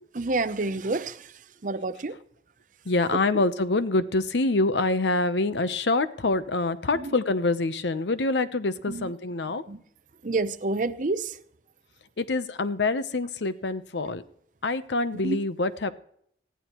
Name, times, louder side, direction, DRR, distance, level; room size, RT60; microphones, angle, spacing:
voice 1, 0.1-1.3 1.6-2.2 6.9-7.1 8.9-9.1 9.5-9.8 10.2-11.4 15.1-15.4, right 3 dB, 45° right, 12 dB, 0.7 m, -29 dB
voice 2, 2.9-9.6 12.2-14.2 14.6-15.9, left 2 dB, 80° left, 12 dB, 0.8 m, -26 dB
19.5 x 14.5 x 3.0 m, 0.66 s
head